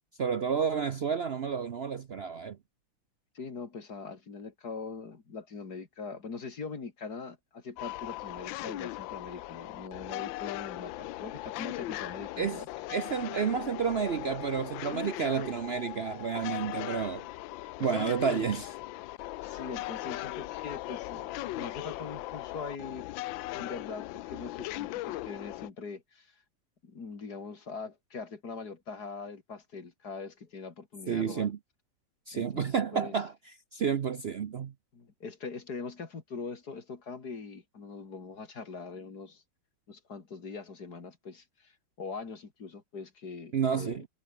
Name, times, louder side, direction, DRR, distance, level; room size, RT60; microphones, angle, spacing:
voice 1, 0.2-2.6 12.4-12.6 12.9-17.3 17.8-18.8 31.1-31.6 32.3-33.3 33.7-34.7 43.5-44.1, right 6 dB, 75° right, 0.5 m, -30 dB
voice 2, 3.3-12.7 19.4-23.1 23.5-26.3 26.8-31.5 32.3-33.1 34.9-39.4 39.9-41.7 42.0-44.0, left 4 dB, 55° left, 3.2 m, -42 dB
sound 1, 7.8-25.7, left 17 dB, 80° left, 1.3 m, -39 dB
omnidirectional pair, 2.1 m